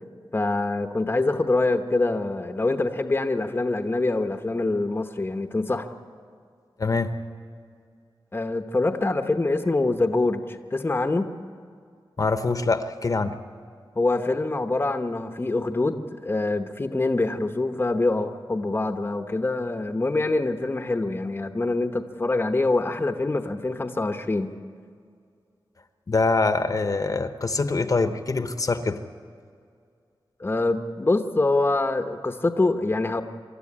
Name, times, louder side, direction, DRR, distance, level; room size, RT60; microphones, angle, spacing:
voice 1, 0.3-5.9 8.3-11.3 14.0-24.5 30.4-33.2, left 2 dB, 25° left, 7 dB, 1.0 m, -25 dB
voice 2, 6.8-7.1 12.2-13.4 26.1-29.0, left 3 dB, 45° left, 9 dB, 1.0 m, -24 dB
25.5 x 13.0 x 9.8 m, 2.2 s
wide cardioid pair, 120°, 9 cm